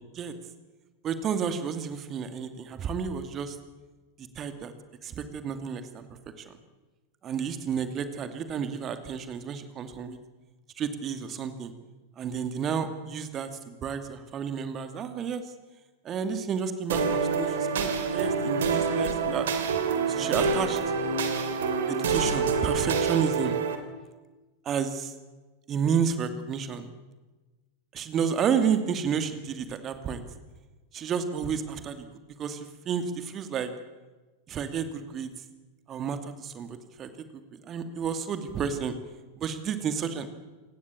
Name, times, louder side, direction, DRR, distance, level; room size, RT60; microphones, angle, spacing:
voice 1, 1.0-3.6 4.4-4.7 5.0-6.0 7.2-10.2 10.8-11.7 12.2-15.4 16.0-19.5 20.1-20.8 21.9-23.6 24.6-25.1 25.7-26.9 27.9-30.2 30.9-32.1 32.4-33.7 34.5-35.3 35.9-37.1 37.6-38.9 39.4-40.3, right 7 dB, 30° right, 9 dB, 2.5 m, -31 dB
sound 1, 16.9-23.7, right 5 dB, 60° right, 3.3 m, -27 dB
28.0 x 18.5 x 8.7 m, 1.2 s
figure-of-eight pair, 90°, 0 cm